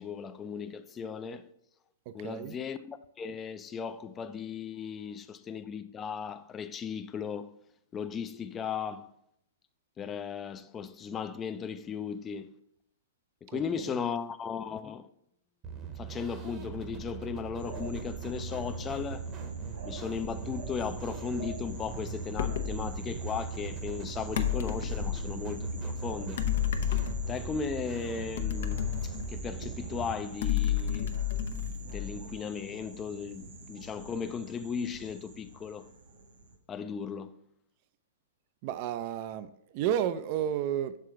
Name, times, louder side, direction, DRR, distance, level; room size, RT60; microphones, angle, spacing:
voice 1, 0.0-1.5 2.1-7.5 7.9-9.1 10.0-12.5 13.4-15.1 16.0-19.3 19.8-26.5 27.3-31.2 31.9-35.9 36.7-37.4, left 6 dB, 20° left, 0.4 m, -36 dB
voice 2, 2.1-2.6 13.5-13.6 38.6-41.0, right 10 dB, 45° right, 0.4 m, -32 dB
sound 1, 15.6-30.1, right 7 dB, 30° right, 0.9 m, -41 dB
sound 2, 17.6-36.6, right 2 dB, 65° right, 1.5 m, -43 dB
sound 3, 22.3-22.8 24.3-25.3 26.4-27.6 28.4-29.7 30.4-32.3, left 10 dB, 65° left, 0.6 m, -31 dB
6.7 x 3.7 x 4.6 m
hypercardioid pair, 125°, 0 cm